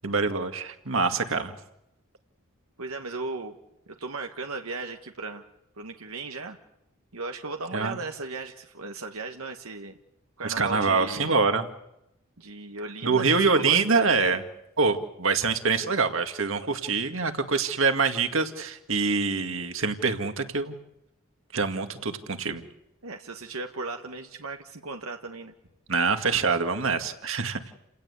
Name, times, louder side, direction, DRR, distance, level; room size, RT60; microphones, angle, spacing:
voice 1, 0.0-1.5 7.7-8.0 10.4-11.7 13.0-14.4 14.8-20.7 21.5-22.6 25.9-27.6, right 4 dB, 65° right, 7 dB, 2.1 m, -25 dB
voice 2, 2.8-3.5 3.9-5.4 5.8-6.6 7.1-9.9 10.4-11.4 12.4-13.8 14.1-14.2 23.0-25.5, right 3 dB, 85° right, 4 dB, 1.5 m, -36 dB
30.0 x 17.5 x 8.3 m, 0.85 s
head